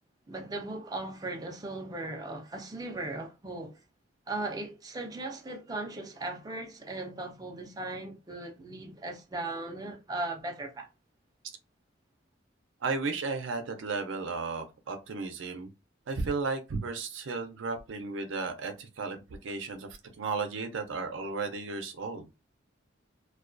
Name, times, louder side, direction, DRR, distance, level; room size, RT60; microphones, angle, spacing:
voice 1, 0.3-3.8 4.3-10.9, right 2 dB, 20° right, 0.4 m, -38 dB
voice 2, 12.8-15.7 16.1-19.9 20.2-22.3, right 4 dB, 80° right, 0.5 m, -34 dB
2.3 x 2.2 x 2.5 m
head